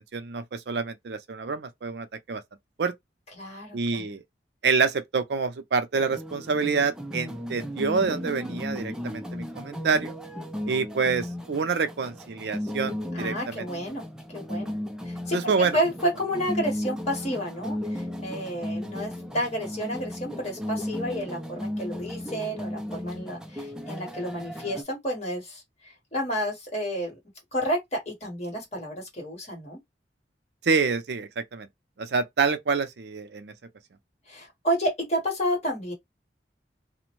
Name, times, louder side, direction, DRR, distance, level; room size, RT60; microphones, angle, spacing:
voice 1, 0.0-2.4 2.8-2.9 3.7-4.2 4.6-10.2 10.7-13.7 15.3-15.8 30.6-31.7 32.0-33.5, right 5 dB, 65° right, 0.4 m, -27 dB
voice 2, 3.4-4.0 13.1-14.0 14.3-14.8 15.0-15.4 15.7-27.1 27.5-29.8 34.3-35.9, equal, 40° left, 1.4 m, -30 dB
sound 1, 5.9-24.8, left 1 dB, 5° right, 0.4 m, -35 dB
2.5 x 2.1 x 3.0 m
head